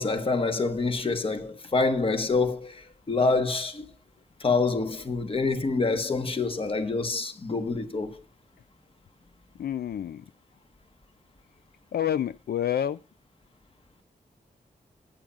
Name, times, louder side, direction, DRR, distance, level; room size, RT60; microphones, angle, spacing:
voice 1, 0.0-3.9 4.4-8.2, left 3 dB, 35° left, 1.2 m, -26 dB
voice 2, 9.6-10.3 11.9-13.0, left 10 dB, 75° left, 0.4 m, -28 dB
15.5 x 8.7 x 2.4 m
wide cardioid pair, 165°, 17 cm